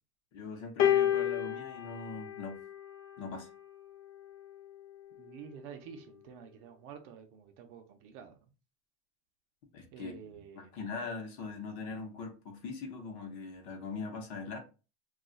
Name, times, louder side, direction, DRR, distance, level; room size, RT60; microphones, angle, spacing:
voice 1, 0.3-2.7 3.2-3.5 9.7-14.6, left 4 dB, 45° left, 0.8 m, -41 dB
sound 1, 0.8-3.3 4.3-4.5, left 11 dB, 80° left, 0.6 m, -30 dB
voice 2, 5.2-8.4 9.9-10.7, right 7 dB, 45° right, 0.5 m, -49 dB
2.3 x 2.3 x 3.8 m
supercardioid pair, 155°, 41 cm